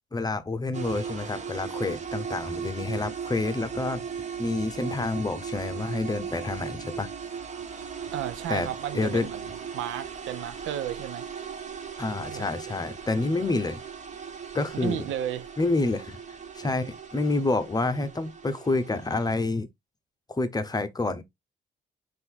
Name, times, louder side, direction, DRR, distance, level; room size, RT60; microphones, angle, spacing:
voice 1, 0.1-4.0 4.4-7.1 8.5-8.7 8.9-9.3 12.0-13.8 14.5-15.0 15.6-16.2 16.5-19.7 20.3-21.2, left 2 dB, 20° left, 0.7 m, -28 dB
sound 1, 0.7-19.3, right 7 dB, 35° right, 0.9 m, -38 dB
voice 2, 8.1-11.3 12.2-12.5 13.4-13.6 14.8-15.5, right 11 dB, 85° right, 0.6 m, -33 dB
4.4 x 2.6 x 3.7 m
cardioid pair, 90°, 20 cm